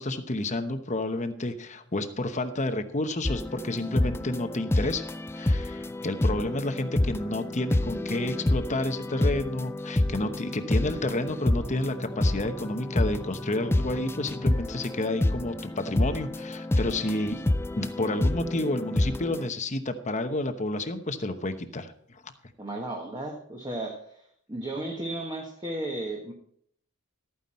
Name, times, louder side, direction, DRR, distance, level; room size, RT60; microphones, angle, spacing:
voice 1, 0.0-5.1 5.3-17.4 17.7-22.3, left 2 dB, 30° left, 8 dB, 1.0 m, -30 dB
sound 1, 3.2-19.5, left 1 dB, 10° left, 0.3 m, -28 dB
voice 2, 22.6-24.2 24.5-26.3, right 1 dB, 20° right, 0 dB, 1.4 m, -34 dB
13.0 x 9.4 x 4.3 m, 0.66 s
head